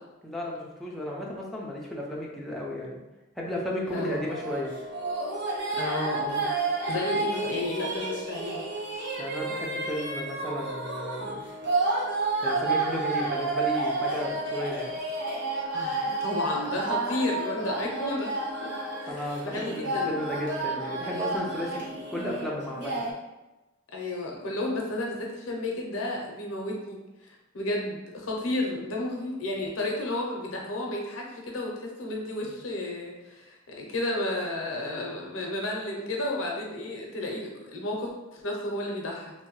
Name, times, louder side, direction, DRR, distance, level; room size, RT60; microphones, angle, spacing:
voice 1, 0.2-3.0 3.4-4.7 9.2-11.4 12.4-15.0 19.1-23.1, left 1 dB, ahead, -4 dB, 0.4 m, -34 dB
voice 2, 3.9-4.2 5.8-8.6 15.7-20.2 23.9-39.3, left 1 dB, 90° left, -1 dB, 0.6 m, -32 dB
sound 1, 3.9-23.1, right 3 dB, 60° right, 0.6 m, -31 dB
2.6 x 2.1 x 3.0 m, 1.0 s
head